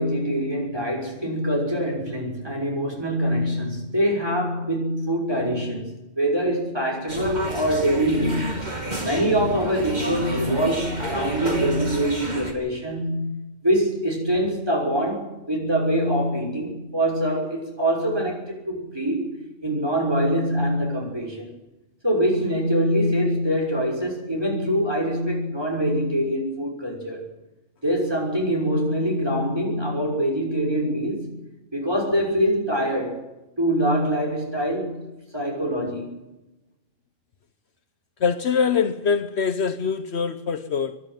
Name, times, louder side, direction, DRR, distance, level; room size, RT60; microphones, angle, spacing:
voice 1, 0.0-5.9 6.2-8.6 9.0-13.3 13.6-19.3 19.6-21.5 22.0-27.3 27.8-31.3 31.7-33.2 33.6-35.0 35.3-36.2, equal, 20° right, 6.0 m, -24 dB
sound 1, 7.1-12.5, right 1 dB, 40° right, 3.0 m, -30 dB
voice 2, 38.2-41.0, left 6 dB, 65° left, 1.2 m, -23 dB
25.5 x 11.5 x 9.1 m
omnidirectional pair, 1.2 m